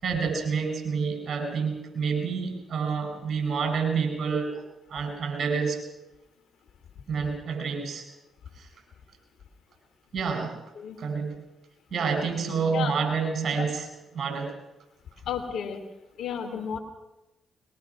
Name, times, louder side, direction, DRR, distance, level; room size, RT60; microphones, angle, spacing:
voice 1, 0.0-4.6 4.9-5.8 7.1-8.1 8.6-8.7 10.1-10.6 11.0-11.4 11.9-13.9 14.1-14.6, right 5 dB, 55° right, 4 dB, 7.1 m, -28 dB
voice 2, 15.2-15.8 16.2-16.8, left 7 dB, 70° left, 6 dB, 2.9 m, -32 dB
22.5 x 21.5 x 6.1 m, 0.96 s
hypercardioid pair, 45°, 0 cm